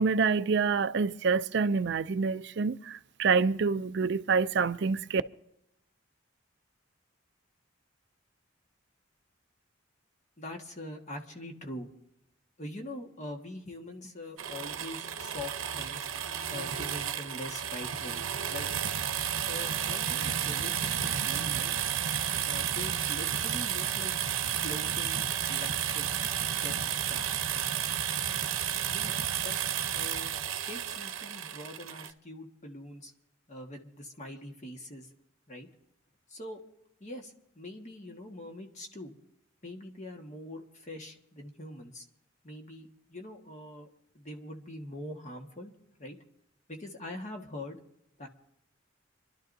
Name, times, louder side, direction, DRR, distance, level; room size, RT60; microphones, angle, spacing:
voice 1, 0.0-5.2, right 5 dB, 55° right, 0.4 m, -27 dB
voice 2, 10.4-11.9 12.6-16.1 16.5-18.7 19.5-21.7 22.4-24.1 24.6-25.2 25.5-26.1 26.6-26.8 27.1-27.5 28.9-29.5 29.9-30.3 30.6-33.1 33.5-35.1 35.5-35.7 36.3-36.6 37.0-39.1 39.6-42.0 42.4-43.9 44.1-45.7 46.0-46.2 46.7-47.8 48.2-48.3, left 1 dB, 35° left, 1.6 m, -43 dB
sound 1, 14.4-32.1, right 9 dB, 90° right, 0.8 m, -32 dB
27.0 x 12.0 x 2.7 m
head